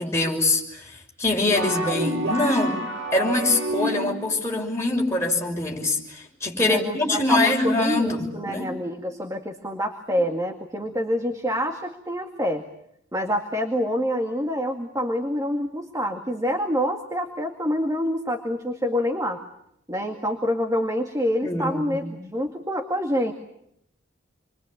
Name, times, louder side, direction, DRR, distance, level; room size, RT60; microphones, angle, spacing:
voice 1, 0.0-2.8 3.1-8.7 21.4-22.0, left 2 dB, 15° left, -2 dB, 6.1 m, -24 dB
sound 1, 1.5-4.4, equal, 65° right, 2.9 m, -28 dB
voice 2, 6.6-12.6 13.1-19.4 19.9-23.3, equal, 15° right, 4 dB, 2.1 m, -27 dB
28.5 x 23.0 x 8.7 m, 0.77 s
head